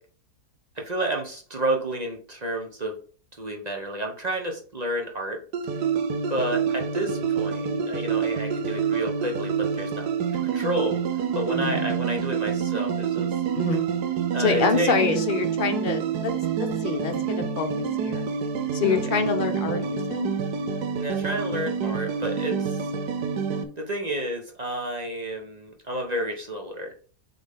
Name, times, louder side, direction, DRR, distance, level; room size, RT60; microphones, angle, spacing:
voice 1, 0.7-2.9 3.3-5.4 6.3-10.1 10.5-11.0 11.3-13.4 14.3-14.9 18.9-19.0 21.0-22.8 23.8-26.9, right 1 dB, 30° right, 2 dB, 0.8 m, -30 dB
sound 1, 5.5-23.6, right 6 dB, 75° right, 1.3 m, -27 dB
voice 2, 11.5-12.0 13.5-13.9 14.4-16.3 16.6-18.2 18.7-20.3, left 5 dB, 35° left, 5 dB, 1.0 m, -26 dB
7.8 x 3.5 x 3.6 m, 0.42 s
omnidirectional pair, 1.8 m